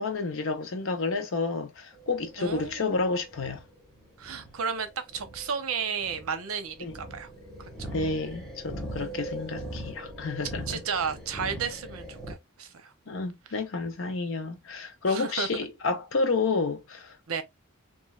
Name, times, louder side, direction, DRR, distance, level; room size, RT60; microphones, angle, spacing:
voice 1, 0.0-3.6 6.8-6.9 7.9-10.8 13.1-17.1, left 3 dB, 65° left, 0.7 m, -30 dB
sound 1, 1.9-12.3, right 1 dB, ahead, 1.0 m, -41 dB
voice 2, 2.4-2.9 4.2-7.3 7.6-7.9 8.9-9.3 10.7-12.9 15.1-15.6 17.3-17.4, right 6 dB, 85° right, 0.7 m, -33 dB
3.1 x 2.5 x 2.3 m
head